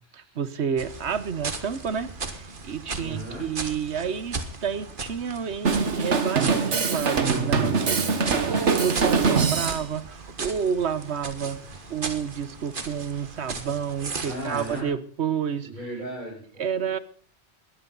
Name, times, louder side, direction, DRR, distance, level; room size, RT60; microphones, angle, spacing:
voice 1, 0.1-11.6 11.9-15.7 16.6-17.0, right 7 dB, 70° right, 14 dB, 1.3 m, -30 dB
sound 1, 0.8-14.8, right 4 dB, 50° right, 1.6 m, -37 dB
voice 2, 3.0-3.5 8.4-8.7 14.2-14.9 15.6-16.8, right 1 dB, 40° left, -7 dB, 7.4 m, -36 dB
Drum kit, 5.7-9.8, right 5 dB, 85° right, 1.8 m, -23 dB
20.0 x 14.0 x 4.0 m, 0.44 s
omnidirectional pair, 1.2 m